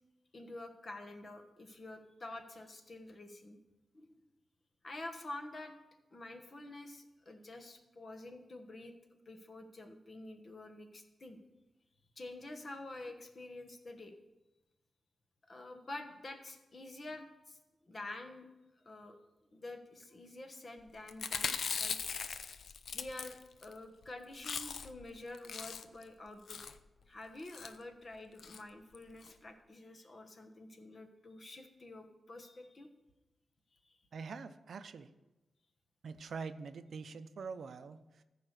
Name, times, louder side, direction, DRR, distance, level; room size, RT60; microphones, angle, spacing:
voice 1, 0.3-3.6 3.9-4.3 4.8-5.7 6.1-8.9 9.2-11.4 12.2-14.1 15.5-17.6 17.9-18.5 18.8-19.2 19.5-22.0 22.9-26.6 27.0-32.9 33.8-34.0, left 2 dB, 35° left, 5 dB, 1.2 m, -48 dB
Chewing mastication, 21.1-23.7 24.0-24.1 24.3-25.0 25.3-26.0 26.5-26.8 27.4-27.7 28.4-28.6 28.9-29.0 29.2-29.3, left 6 dB, 70° left, 0.5 m, -39 dB
voice 2, 34.1-35.1 36.0-38.2, right 5 dB, 70° right, 11 dB, 0.5 m, -44 dB
14.5 x 4.9 x 6.6 m, 1.0 s
wide cardioid pair, 130°, 0 cm